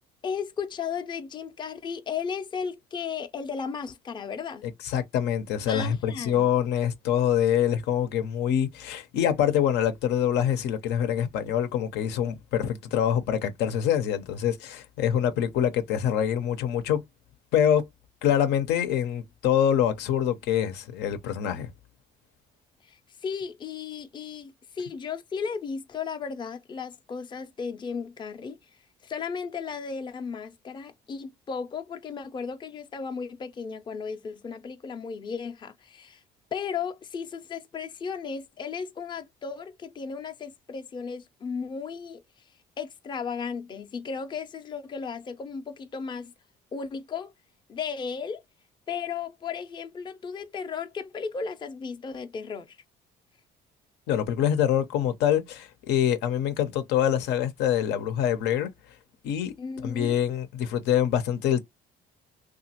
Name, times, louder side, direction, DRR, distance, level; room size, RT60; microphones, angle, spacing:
voice 1, 0.2-4.7 5.7-6.5 22.8-28.6 29.0-36.2 36.5-42.2 42.8-46.3 46.7-47.3 47.7-48.4 48.9-52.8 59.6-60.2, left 6 dB, 25° left, 0.5 m, -35 dB
voice 2, 4.8-17.0 17.5-17.9 18.2-21.7 54.1-58.7 59.2-59.5 59.8-61.6, left 9 dB, 85° left, 0.6 m, -25 dB
2.9 x 2.4 x 2.8 m
cardioid pair, 110°, 17 cm